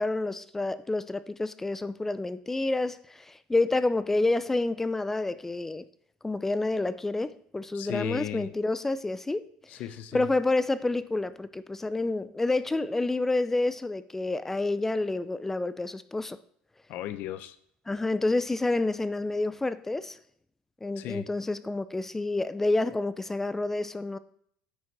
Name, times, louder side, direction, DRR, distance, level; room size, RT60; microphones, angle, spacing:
voice 1, 0.0-5.9 6.2-9.5 10.1-16.4 17.9-20.2 20.8-24.2, left 2 dB, 10° left, 0.5 m, -28 dB
voice 2, 7.7-8.5 9.7-10.3 16.9-17.6 21.0-21.3, left 11 dB, 65° left, 0.7 m, -36 dB
9.6 x 6.2 x 4.7 m
supercardioid pair, 110°, 3 cm